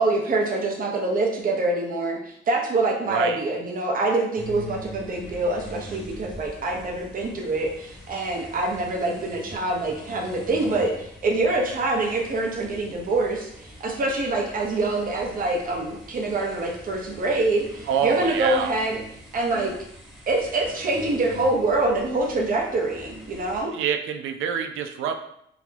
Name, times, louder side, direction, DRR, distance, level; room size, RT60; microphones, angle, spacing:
voice 1, 0.0-13.5 13.8-19.0 19.3-19.7 20.3-23.7, right 2 dB, 45° right, 1 dB, 0.8 m, -25 dB
voice 2, 3.1-3.4 17.9-18.7 23.7-25.2, right 8 dB, 85° right, 6 dB, 0.4 m, -26 dB
sound 1, 4.4-23.6, equal, ahead, 1.0 m, -43 dB
4.0 x 2.1 x 2.8 m, 0.73 s
cardioid pair, 90°, 20 cm